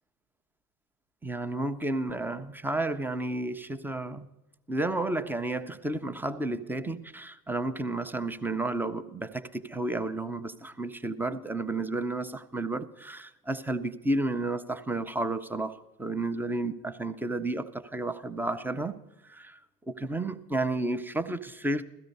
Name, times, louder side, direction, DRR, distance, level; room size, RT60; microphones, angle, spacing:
voice 1, 1.2-4.3 4.7-19.6 19.9-21.8, right 2 dB, 5° right, 0.6 m, -32 dB
16.5 x 14.0 x 5.4 m
hypercardioid pair, 85°, 47 cm